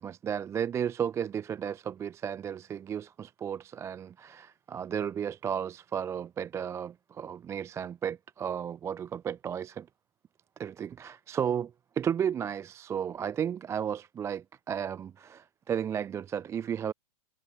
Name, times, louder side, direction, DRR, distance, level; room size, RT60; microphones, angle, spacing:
voice 1, 0.0-9.9 10.6-16.9, right 8 dB, 15° right, 0.4 m, -33 dB
hypercardioid pair, 130°, 19 cm